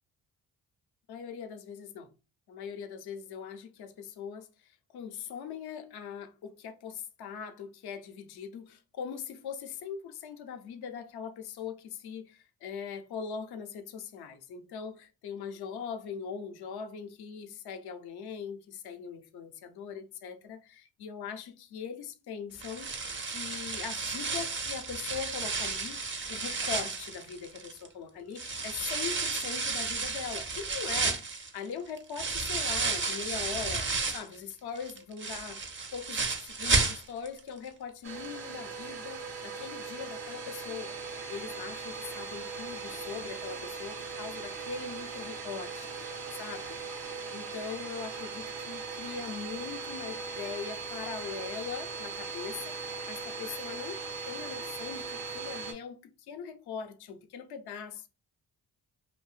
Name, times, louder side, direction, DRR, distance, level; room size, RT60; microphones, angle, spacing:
voice 1, 1.1-2.1 2.5-46.8 47.3-58.1, left 6 dB, 55° left, 0.6 m, -41 dB
sound 1, 22.6-27.9 28.4-34.4 34.8-37.4 37.7-37.8 38.2-38.3, right 4 dB, 25° right, 0.5 m, -32 dB
Domestic sounds home sounds, 38.0-55.7, right 4 dB, 70° right, 0.8 m, -39 dB
2.5 x 2.3 x 2.3 m
supercardioid pair, 55°, 46 cm